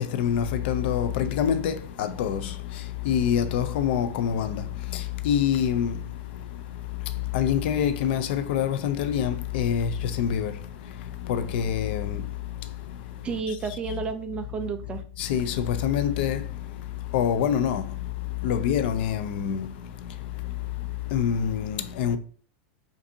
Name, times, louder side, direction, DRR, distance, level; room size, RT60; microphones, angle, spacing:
voice 1, 0.0-13.6 15.2-22.2, left 9 dB, 65° left, 0.5 m, -27 dB
voice 2, 13.2-15.0, right 5 dB, 15° right, 0.5 m, -31 dB
5.2 x 2.6 x 2.7 m
supercardioid pair, 155°, 6 cm